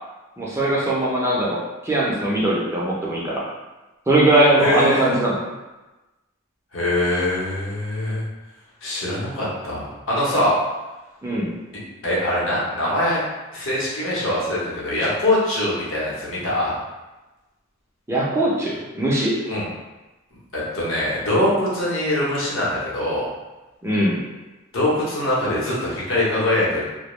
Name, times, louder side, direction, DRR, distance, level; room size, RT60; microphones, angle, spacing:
voice 1, 0.4-3.5 4.1-5.4 11.2-11.5 18.1-19.4 23.8-24.2, right 1 dB, 15° right, -5 dB, 0.4 m, -20 dB
voice 2, 4.6-5.3 6.7-8.2 8.8-10.5 12.0-13.2 13.5-16.7 19.5-19.6 20.5-23.3 24.7-26.9, left 1 dB, 70° left, -6 dB, 0.8 m, -23 dB
2.2 x 2.1 x 3.0 m, 1.1 s
head